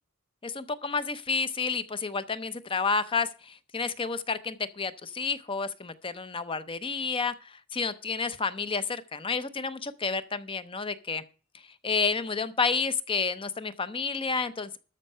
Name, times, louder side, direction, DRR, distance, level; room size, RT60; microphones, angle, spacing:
voice 1, 0.4-11.2 11.8-14.8, left 5 dB, 25° left, 13 dB, 0.7 m, -30 dB
13.0 x 6.4 x 5.5 m, 0.37 s
head